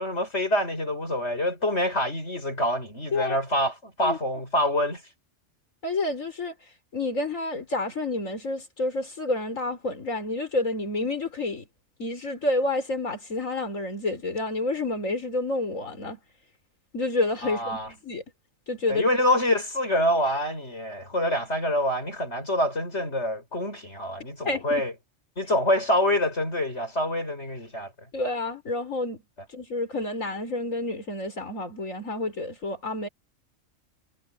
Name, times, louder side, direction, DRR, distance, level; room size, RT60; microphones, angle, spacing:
voice 1, 0.0-5.0 17.4-17.9 18.9-24.9 25.4-27.9, left 1 dB, 60° left, 7.5 m, -26 dB
voice 2, 5.8-11.6 12.0-16.2 16.9-18.2 18.7-19.1 24.4-24.8 28.1-29.2 29.5-33.1, left 2 dB, 85° left, 5.0 m, -29 dB
omnidirectional pair, 1.3 m